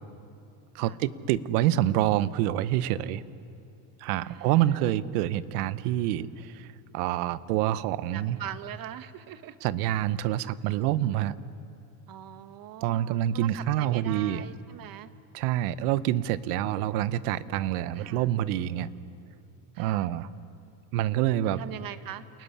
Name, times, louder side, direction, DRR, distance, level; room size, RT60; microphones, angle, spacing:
voice 1, 0.7-3.2 4.0-6.7 6.9-8.4 9.6-11.3 12.8-14.4 15.3-18.9 19.8-20.3 20.9-21.6, right 13 dB, 85° right, 16 dB, 0.9 m, -27 dB
voice 2, 4.2-4.9 8.1-9.6 12.1-15.1 17.9-18.3 19.7-20.1 21.4-22.4, right 11 dB, 50° right, 11 dB, 1.4 m, -42 dB
28.5 x 15.0 x 9.9 m, 2.7 s
supercardioid pair, 105°, 44 cm